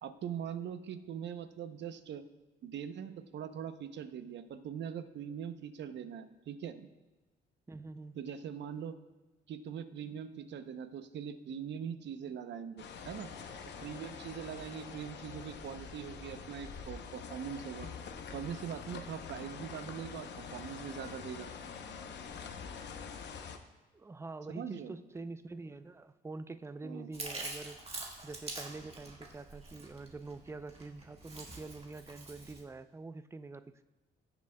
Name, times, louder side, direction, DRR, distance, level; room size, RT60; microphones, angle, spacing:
voice 1, 0.0-2.2 2.6-6.9 8.1-8.9 9.5-13.3 13.8-17.9 18.3-21.5 24.5-24.9 26.8-27.1, right 8 dB, 65° right, 11 dB, 0.7 m, -42 dB
voice 2, 7.7-8.1 23.9-33.8, right 3 dB, 15° right, 12 dB, 0.4 m, -46 dB
sound 1, 12.8-23.6, left 6 dB, 60° left, 0.8 m, -45 dB
Chewing mastication, 27.1-32.6, right 2 dB, 30° right, 1.8 m, -45 dB
16.5 x 7.0 x 2.2 m, 1.1 s
cardioid pair, 90°, 20 cm